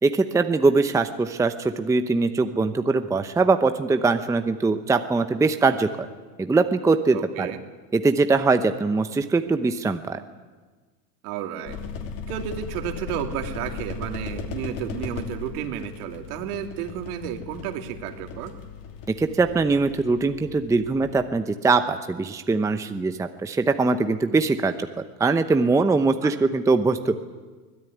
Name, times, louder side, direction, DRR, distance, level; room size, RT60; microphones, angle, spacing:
voice 1, 0.0-5.9 6.4-7.5 7.9-10.2 19.2-24.7 25.2-27.1, right 3 dB, 5° right, 8 dB, 0.8 m, -22 dB
voice 2, 7.1-7.6 11.2-11.8 12.3-18.5 26.2-26.3, right 9 dB, 65° right, 5 dB, 3.0 m, -32 dB
sound 1, 11.7-21.2, left 5 dB, 40° left, 3.1 m, -37 dB
24.0 x 17.5 x 9.3 m, 1.4 s
supercardioid pair, 130°, 48 cm